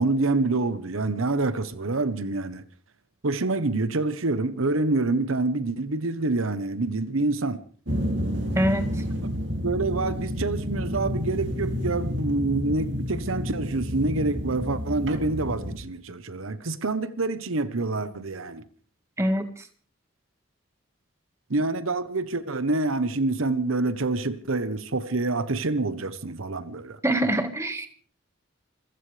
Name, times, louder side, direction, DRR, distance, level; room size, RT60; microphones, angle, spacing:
voice 1, 0.0-2.6 3.2-7.6 9.2-9.3 9.6-18.6 21.5-27.0, right 3 dB, 80° right, 1.0 m, -27 dB
sound 1, 7.9-15.8, equal, 55° right, 2.4 m, -30 dB
voice 2, 8.5-8.9 19.2-19.4 27.0-27.9, right 1 dB, 15° right, 1.6 m, -24 dB
27.0 x 15.5 x 3.4 m
head